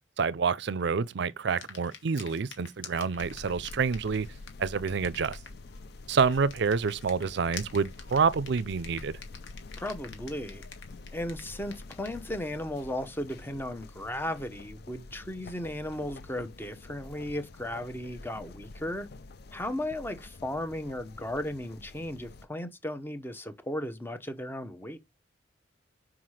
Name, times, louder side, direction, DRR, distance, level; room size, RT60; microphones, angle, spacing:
voice 1, 0.2-4.3 4.6-5.4 6.1-9.2, right 5 dB, 60° right, 0.5 m, -28 dB
sound 1, 1.5-12.6, left 6 dB, 75° left, 1.5 m, -49 dB
sound 2, 3.2-22.5, left 3 dB, 55° left, 0.5 m, -47 dB
voice 2, 9.8-10.7 11.1-19.1 19.5-25.0, left 1 dB, 10° left, 0.8 m, -35 dB
5.9 x 4.8 x 4.8 m
head